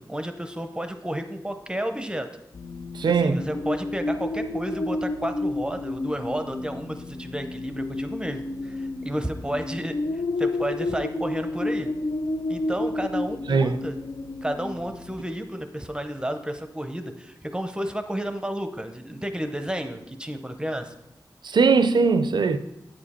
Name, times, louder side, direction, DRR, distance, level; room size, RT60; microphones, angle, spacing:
voice 1, 0.0-2.3 3.1-11.9 12.5-14.0 14.4-20.9, right 1 dB, 10° right, 0.6 m, -32 dB
sound 1, 2.5-15.1, left 2 dB, 75° left, 0.5 m, -31 dB
voice 2, 2.9-3.4 13.5-13.8 21.4-22.6, right 4 dB, 80° right, 0.4 m, -20 dB
8.7 x 5.0 x 4.2 m
wide cardioid pair, 85°, 8 cm